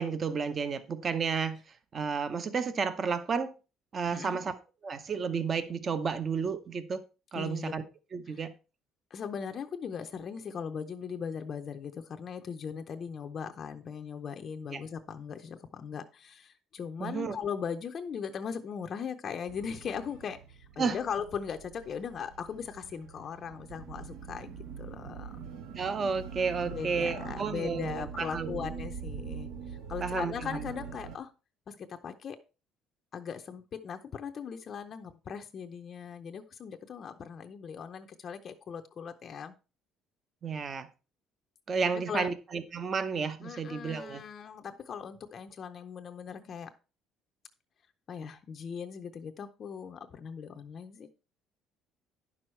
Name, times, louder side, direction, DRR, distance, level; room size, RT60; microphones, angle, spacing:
voice 1, 0.0-1.6 1.9-3.5 3.9-4.6 4.8-7.0 7.3-7.8 8.1-8.5 14.7-14.8 17.0-17.4 20.8-21.0 25.8-28.7 30.0-30.7 40.4-40.9 41.7-44.2, right 5 dB, 30° right, 0.8 m, -32 dB
voice 2, 4.1-4.4 7.3-7.8 8.3-8.4 9.1-25.3 26.7-31.3 31.7-32.4 33.1-39.5 41.9-42.3 43.4-46.7 48.1-51.1, left 7 dB, 35° left, 0.6 m, -39 dB
sound 1, 19.5-31.2, right 6 dB, 80° right, 1.5 m, -43 dB
10.5 x 6.2 x 4.4 m
cardioid pair, 160°, 0 cm